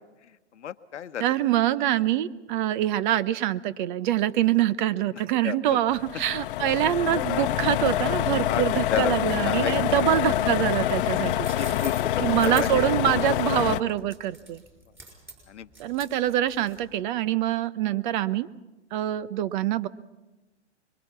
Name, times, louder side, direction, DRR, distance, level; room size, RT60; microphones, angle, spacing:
voice 1, 0.2-1.3 5.1-5.8 8.4-9.1 9.4-9.8 10.0-10.2 11.4-12.8 13.3-13.7 15.5-15.7, left 9 dB, 80° left, 13 dB, 1.0 m, -33 dB
voice 2, 1.2-11.5 12.2-14.6 15.8-18.5 18.9-19.9, right 12 dB, 45° right, 16 dB, 0.9 m, -25 dB
sound 1, 5.9-13.8, left 12 dB, 50° left, 0.9 m, -26 dB
sound 2, 11.2-17.0, right 3 dB, 5° right, 6.2 m, -45 dB
26.0 x 22.5 x 5.9 m, 1.1 s
hypercardioid pair, 125°, 35 cm